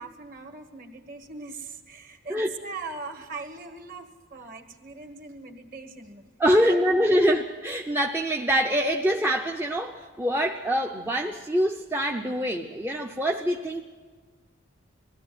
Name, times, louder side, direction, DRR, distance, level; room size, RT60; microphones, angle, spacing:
voice 1, 0.0-6.3 6.6-7.2, right 3 dB, 45° right, 7 dB, 1.7 m, -40 dB
voice 2, 6.4-13.8, equal, 10° right, 2 dB, 0.6 m, -24 dB
20.5 x 15.5 x 9.3 m, 1.4 s
head